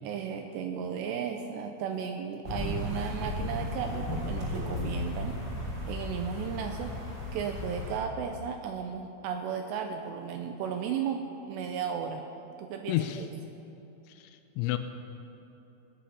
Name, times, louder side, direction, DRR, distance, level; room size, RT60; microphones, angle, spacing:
voice 1, 0.0-5.4 5.9-7.0 7.3-12.3 12.6-13.3, right 7 dB, 85° right, 5 dB, 2.6 m, -35 dB
sound 1, 2.4-8.0, left 1 dB, 25° right, 3.4 m, -35 dB
voice 2, 12.9-13.3 14.1-14.8, left 14 dB, 85° left, 9 dB, 2.8 m, -31 dB
18.5 x 9.9 x 5.6 m, 2.9 s
omnidirectional pair, 5.5 m